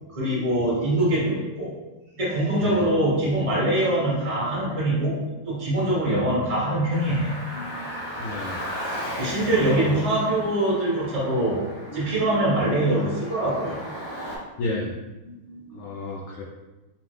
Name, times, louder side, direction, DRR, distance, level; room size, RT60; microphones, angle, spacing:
voice 1, 0.1-1.8 2.2-8.0 9.2-13.8 15.3-15.9, right 1 dB, 30° right, -6 dB, 0.5 m, -24 dB
Car, 6.9-14.4, equal, 25° left, 0.4 m, -36 dB
voice 2, 8.2-8.6 9.4-9.9 14.6-15.0 15.7-16.4, left 2 dB, 80° left, -3 dB, 1.4 m, -31 dB
3.4 x 2.9 x 3.2 m, 1.1 s
omnidirectional pair, 2.3 m